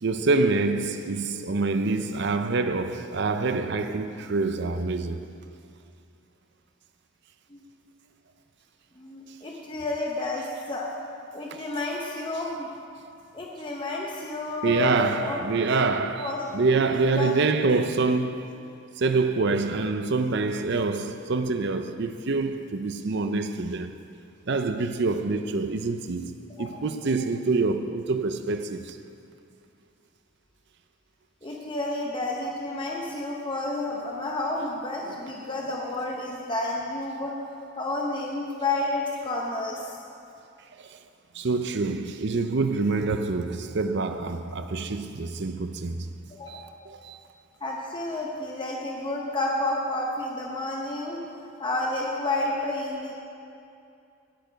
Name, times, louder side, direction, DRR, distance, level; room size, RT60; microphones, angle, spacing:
voice 1, 0.0-5.2 14.6-18.6 19.0-23.9 24.5-29.0 35.0-35.1 41.3-46.1 46.5-47.2, right 3 dB, 55° right, 0.6 m, -26 dB
voice 2, 9.0-10.9 11.3-12.7 13.3-15.4 16.2-17.3 26.5-26.8 31.4-37.3 37.8-39.9 46.3-46.7 47.6-51.2 51.6-53.1, left 2 dB, 25° left, 0.8 m, -30 dB
17.0 x 6.7 x 5.2 m
head